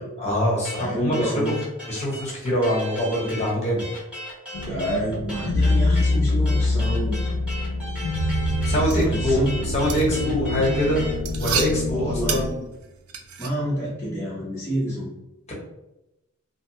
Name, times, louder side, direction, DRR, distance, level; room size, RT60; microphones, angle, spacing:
voice 1, 0.2-1.6 1.8-3.9 8.6-11.0 11.4-12.6, equal, 30° left, -4 dB, 1.0 m, -24 dB
sound 1, 0.6-11.2, equal, 5° right, 1.0 m, -37 dB
voice 2, 0.8-1.5 4.6-7.2 8.9-9.6 11.9-12.4 13.4-15.1, equal, 10° left, -9 dB, 0.6 m, -28 dB
sound 2, 4.5-12.5, left 2 dB, 85° left, 0.4 m, -24 dB
sound 3, 8.3-13.5, right 6 dB, 85° right, 0.4 m, -32 dB
2.6 x 2.1 x 3.0 m, 0.92 s
head